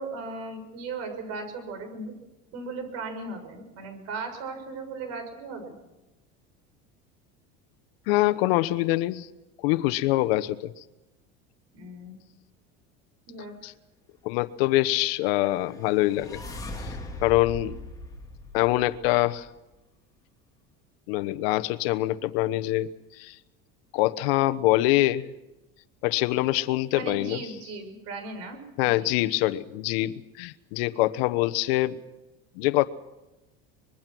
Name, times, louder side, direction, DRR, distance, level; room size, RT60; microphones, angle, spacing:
voice 1, 0.0-2.1 2.5-5.7 11.7-12.1 13.3-13.6 26.9-29.1, right 3 dB, 60° right, 7 dB, 6.8 m, -37 dB
voice 2, 8.1-9.3 9.6-10.7 13.6-13.7 14.2-16.4 16.8-16.9 17.2-17.7 18.5-19.5 21.1-22.9 23.2-23.4 23.9-25.3 26.0-27.4 28.8-32.0 32.6-32.9, left 17 dB, 85° left, 11 dB, 1.1 m, -24 dB
sound 1, 15.3-19.5, left 1 dB, 15° left, 3.8 m, -40 dB
24.5 x 22.0 x 6.2 m, 0.99 s
supercardioid pair, 120°, 29 cm